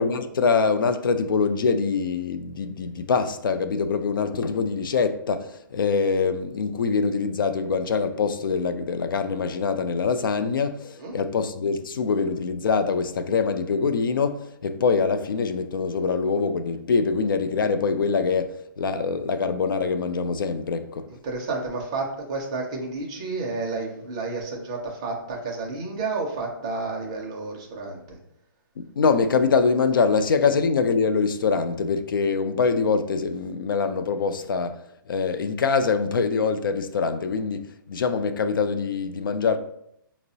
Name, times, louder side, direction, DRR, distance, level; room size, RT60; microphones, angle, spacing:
voice 1, 0.0-21.1 28.8-39.6, left 5 dB, 75° left, 0.4 m, -24 dB
voice 2, 21.2-28.2, right 3 dB, 15° right, 0.4 m, -31 dB
5.2 x 2.0 x 2.7 m
hypercardioid pair, 175°, 11 cm